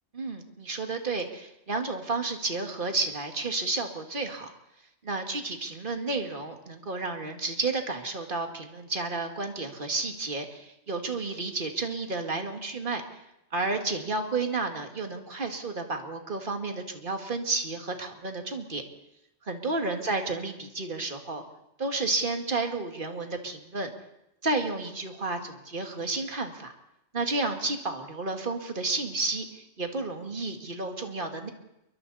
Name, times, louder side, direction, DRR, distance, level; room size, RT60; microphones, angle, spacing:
voice 1, 0.1-4.5 5.0-13.0 13.5-18.8 19.4-21.4 21.8-23.9 24.4-26.7 27.1-31.5, right 3 dB, 45° right, 4 dB, 2.3 m, -31 dB
29.0 x 23.0 x 4.2 m, 0.87 s
omnidirectional pair, 1.2 m